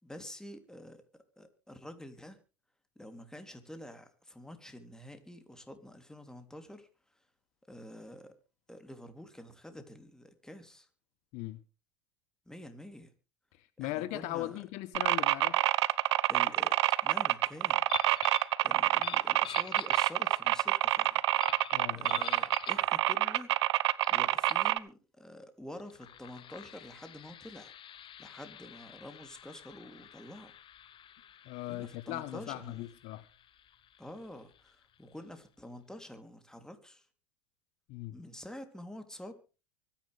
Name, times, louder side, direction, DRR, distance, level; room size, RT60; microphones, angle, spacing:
voice 1, 0.0-1.0 1.4-2.4 2.9-6.9 7.7-8.3 8.7-10.9 12.5-13.1 13.8-14.5 16.3-16.7 17.0-17.8 18.6-21.5 21.9-23.5 24.1-27.7 28.2-30.5 31.7-32.8 34.0-37.0 38.1-39.4, left 1 dB, 5° left, 3.1 m, -48 dB
voice 2, 13.6-15.6 21.7-22.2 31.5-33.2 37.9-38.2, left 17 dB, 60° left, 1.2 m, -39 dB
sound 1, 14.9-24.8, right 16 dB, 75° right, 0.9 m, -27 dB
sound 2, 17.9-18.5 18.9-20.5 21.4-22.9 24.0-24.1 24.4-24.7 25.7-35.0, left 10 dB, 35° left, 1.0 m, -47 dB
24.5 x 10.0 x 3.4 m
hypercardioid pair, 90°, 14 cm